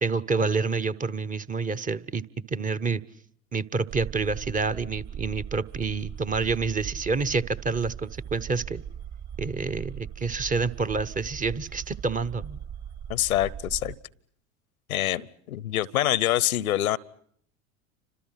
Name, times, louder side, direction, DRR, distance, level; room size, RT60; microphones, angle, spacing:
voice 1, 0.0-2.2 2.5-3.0 3.5-8.8 9.4-12.6, right 4 dB, 20° right, 12 dB, 1.0 m, -28 dB
sound 1, 3.9-13.9, right 8 dB, 45° right, 2.9 m, -39 dB
voice 2, 13.1-13.9 14.9-17.0, left 13 dB, 80° left, 23 dB, 1.0 m, -25 dB
30.0 x 26.0 x 5.9 m, 0.65 s
hypercardioid pair, 85°, 42 cm